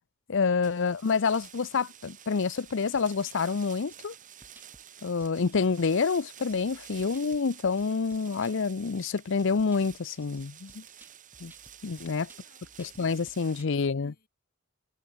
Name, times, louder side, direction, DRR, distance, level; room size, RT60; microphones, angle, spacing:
voice 1, 0.3-4.1 5.0-10.8 11.4-11.5 11.8-12.3 12.8-14.1, left 5 dB, 60° left, 0.6 m, -28 dB
sound 1, 0.6-13.6, right 10 dB, 40° right, 2.0 m, -50 dB
sound 2, 2.6-3.4 3.9-4.0 4.4-4.8 5.2-5.9 6.5-8.5 9.1-9.2 9.6-13.7, right 1 dB, 10° right, 7.7 m, -57 dB
voice 2, 11.9-12.7 13.3-14.3, left 4 dB, 45° left, 5.5 m, -67 dB
head